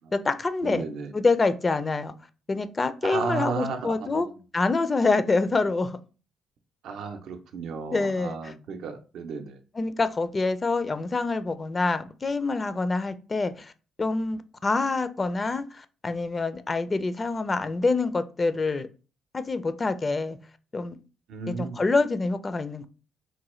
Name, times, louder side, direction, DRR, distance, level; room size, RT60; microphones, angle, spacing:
voice 1, 0.1-0.9 1.1-2.1 2.5-4.3 4.5-6.0 7.9-8.5 9.7-13.7 14.0-18.9 19.3-20.4 20.7-21.0 21.6-22.9, left 3 dB, 30° left, 12 dB, 0.4 m, -26 dB
voice 2, 0.6-1.1 3.0-4.3 6.8-9.6 21.3-21.8, right 5 dB, 80° right, 6 dB, 0.5 m, -34 dB
3.8 x 2.2 x 3.0 m, 0.35 s
cardioid pair, 90°, 0 cm